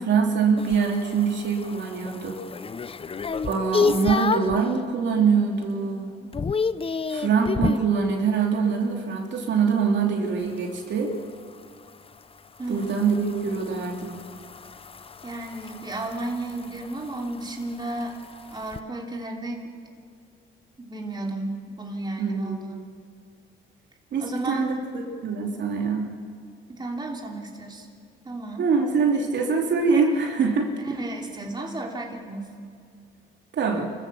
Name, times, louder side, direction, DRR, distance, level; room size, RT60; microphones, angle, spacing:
voice 1, 0.0-2.4 3.4-6.1 7.1-11.1 12.7-14.2 22.2-22.9 24.1-26.1 28.6-30.7 33.5-33.9, right 5 dB, 65° right, 0 dB, 3.0 m, -24 dB
sound 1, 0.6-4.6 5.1-5.5 5.8-7.9 10.4-18.8, left 5 dB, 30° left, 0.7 m, -31 dB
voice 2, 12.6-13.1 15.2-18.2 18.5-19.7 20.8-22.7 24.2-24.8 26.7-27.9 28.2-28.7 30.8-32.5, right 2 dB, 20° right, 0 dB, 3.1 m, -33 dB
28.0 x 15.0 x 7.1 m, 2.2 s
cardioid pair, 90°, 20 cm